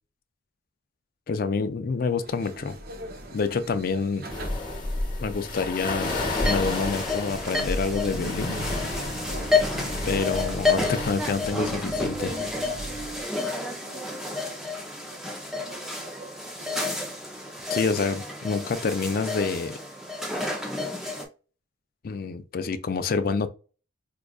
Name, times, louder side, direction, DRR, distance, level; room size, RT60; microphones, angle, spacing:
voice 1, 1.3-2.8 3.3-4.3 5.2-8.6 9.8-12.3 17.7-19.8 22.0-23.5, left 4 dB, 45° left, 0.4 m, -27 dB
sound 1, 2.1-13.2, right 1 dB, 45° right, 0.7 m, -38 dB
sound 2, 4.3-11.1, left 2 dB, 20° left, 1.1 m, -31 dB
sound 3, 6.0-21.3, left 3 dB, ahead, 0.6 m, -30 dB
voice 2, 13.3-17.2, right 2 dB, 70° right, 1.2 m, -49 dB
4.7 x 2.4 x 2.3 m
head